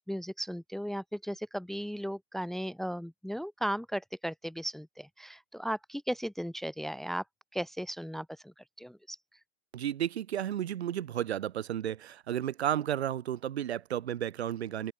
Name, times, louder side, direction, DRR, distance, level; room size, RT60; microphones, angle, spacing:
voice 1, 0.0-7.2 7.5-9.2, equal, ahead, 1.5 m, -36 dB
voice 2, 9.7-14.9, right 10 dB, 60° right, 4.6 m, -32 dB
open air
figure-of-eight pair, 105°, 36 cm